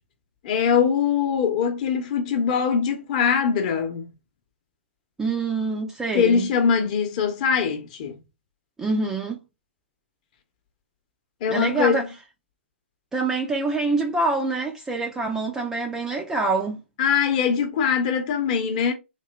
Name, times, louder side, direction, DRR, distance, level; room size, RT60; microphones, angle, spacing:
voice 1, 0.4-4.1 6.1-8.2 11.4-12.1 17.0-18.9, left 6 dB, 35° left, 0.8 m, -22 dB
voice 2, 5.2-6.5 8.8-9.4 11.5-12.1 13.1-16.8, right 3 dB, 5° right, 0.4 m, -25 dB
3.1 x 2.9 x 2.2 m
hypercardioid pair, 140°, 7 cm